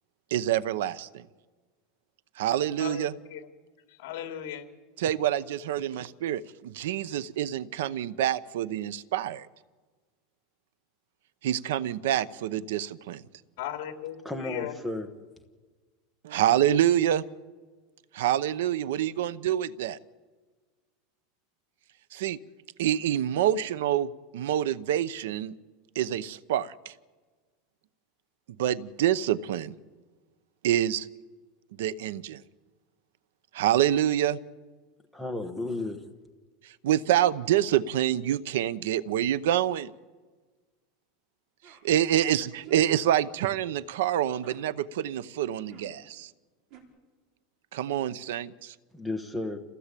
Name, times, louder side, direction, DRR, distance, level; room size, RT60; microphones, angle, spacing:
voice 1, 0.3-1.2 2.4-3.1 5.0-9.5 11.4-13.2 16.2-17.2 18.1-20.0 22.1-22.4 22.8-25.5 25.9-26.9 28.6-29.7 30.6-31.1 31.8-32.4 33.5-34.4 36.8-39.9 41.8-46.3 47.7-48.7, right 11 dB, 75° right, 17 dB, 0.8 m, -26 dB
voice 2, 2.8-3.5 3.9-4.6 13.6-14.7, left 11 dB, 60° left, 5 dB, 3.1 m, -37 dB
voice 3, 14.2-15.1 35.1-36.0 48.9-49.6, left 2 dB, ahead, 9 dB, 1.2 m, -33 dB
sound 1, 41.6-41.8 42.6-42.9 44.4-44.6 45.7-45.9 46.7-46.8, right 6 dB, 40° right, 3.9 m, -51 dB
28.5 x 16.5 x 8.4 m, 1.4 s
supercardioid pair, 180°, 0 cm